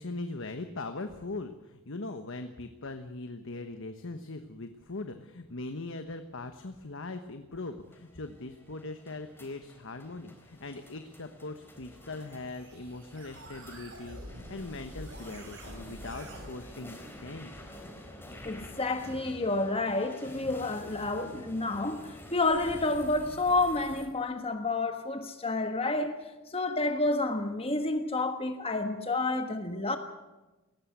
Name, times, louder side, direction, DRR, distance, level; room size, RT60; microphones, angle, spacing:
voice 1, 0.0-17.5, left 2 dB, 60° left, 1.2 m, -40 dB
sound 1, 5.5-24.1, left 1 dB, 10° left, 4.0 m, -49 dB
sound 2, 11.5-16.5, right 1 dB, 60° right, 5.9 m, -47 dB
voice 2, 18.4-30.0, left 2 dB, 25° left, 1.4 m, -30 dB
19.0 x 15.0 x 9.5 m
head